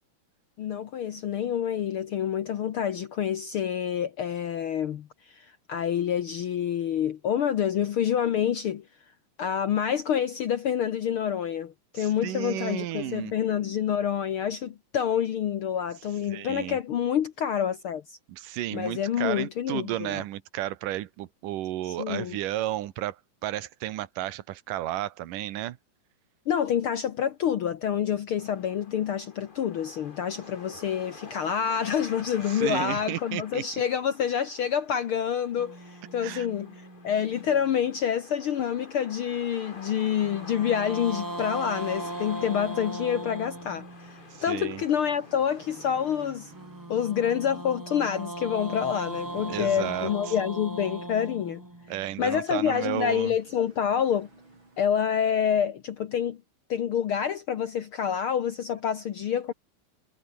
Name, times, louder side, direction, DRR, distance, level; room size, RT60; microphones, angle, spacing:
voice 1, 0.6-8.9 9.4-18.2 18.7-20.2 21.8-22.4 26.5-46.5 46.9-51.6 52.2-54.3 54.8-56.4 56.7-59.5, left 8 dB, 70° left, 1.2 m, -27 dB
voice 2, 12.0-13.3 16.3-16.8 18.3-23.2 23.4-25.8 32.5-33.6 36.2-36.5 44.5-44.8 49.5-50.1 51.9-53.3, right 14 dB, 80° right, 2.8 m, -32 dB
sound 1, 28.4-46.3, left 3 dB, 20° left, 1.4 m, -48 dB
sound 2, 35.6-38.0 40.2-44.4 46.5-52.7, right 1 dB, 15° right, 0.7 m, -39 dB
sound 3, 42.1-55.5, right 2 dB, 35° right, 8.4 m, -52 dB
omnidirectional pair, 3.8 m